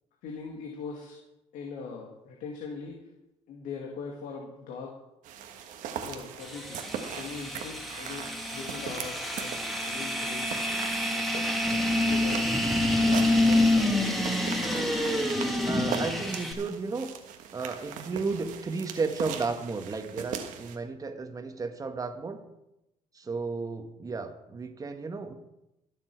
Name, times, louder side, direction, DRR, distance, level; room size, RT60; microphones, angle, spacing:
voice 1, 0.2-1.2 1.5-3.0 3.5-4.9 6.0-9.5 9.8-10.5 11.1-11.5 12.0-12.5 13.1-13.9, left 5 dB, 80° left, 0 dB, 2.0 m, -41 dB
sound 1, 5.2-20.8, right 8 dB, 80° right, 1.4 m, -40 dB
sound 2, 6.4-16.5, left 1 dB, ahead, 2.1 m, -27 dB
voice 2, 15.6-17.1 17.5-22.4 23.1-25.3, right 4 dB, 25° right, 7 dB, 1.5 m, -33 dB
21.5 x 7.3 x 4.6 m, 0.90 s
cardioid pair, 110°, 13 cm